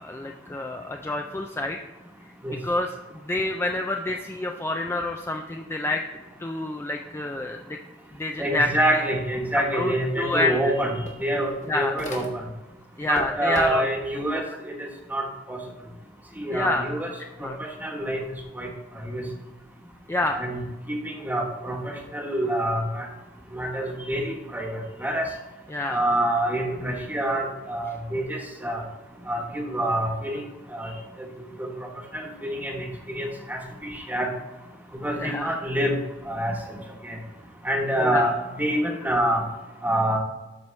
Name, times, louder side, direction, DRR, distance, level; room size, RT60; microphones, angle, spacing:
voice 1, 0.0-1.8 2.5-6.0 6.4-7.8 8.2-9.0 9.7-10.7 11.7-12.1 13.0-13.9 14.3-14.4 16.5-16.8 17.4-17.6 20.1-20.4 25.7-26.1 35.2-35.6 38.0-38.3, left 2 dB, 15° left, 4 dB, 0.3 m, -28 dB
voice 2, 8.4-12.3 13.1-15.6 16.4-17.1 17.4-18.2 18.6-18.7 19.0-19.2 20.3-20.6 20.9-23.1 23.5-25.3 25.9-28.8 29.3-30.9 31.6-34.3 35.0-36.0 36.3-36.8 37.0-37.2 37.6-39.4 39.8-40.2, right 1 dB, 10° right, 1 dB, 1.1 m, -27 dB
sound 1, 10.0-10.1 10.4-12.7 13.0-14.1, left 1 dB, 40° left, 1.4 m, -40 dB
12.5 x 4.6 x 3.1 m, 1.1 s
head